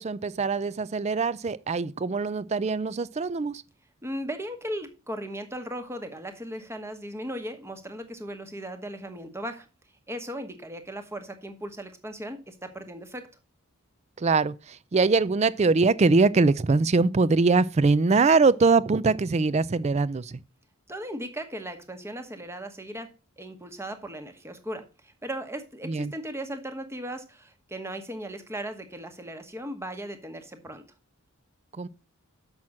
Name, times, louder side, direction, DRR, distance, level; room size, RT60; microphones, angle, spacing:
voice 1, 0.0-3.6 14.2-20.4 25.8-26.1 31.8-31.9, right 4 dB, 30° right, 0.4 m, -23 dB
voice 2, 4.0-9.7 10.1-13.2 20.9-23.1 23.4-30.8, right 1 dB, 10° right, 1.1 m, -37 dB
7.2 x 6.1 x 6.3 m
head